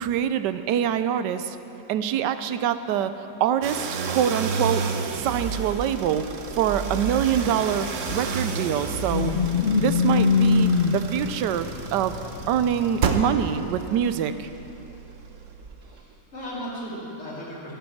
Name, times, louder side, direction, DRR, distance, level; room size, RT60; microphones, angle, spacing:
voice 1, 0.0-1.6 1.9-3.1 3.4-4.8 5.1-6.3 6.6-9.3 9.8-12.2 12.5-14.5, right 9 dB, 85° right, 11 dB, 1.2 m, -25 dB
sound 1, 3.6-16.0, right 5 dB, 55° right, 1.0 m, -31 dB
sound 2, 7.8-13.3, left 5 dB, 65° left, 0.6 m, -23 dB
voice 2, 15.8-17.7, equal, 40° left, -6 dB, 3.2 m, -36 dB
11.5 x 11.0 x 7.3 m, 3.0 s
omnidirectional pair, 1.8 m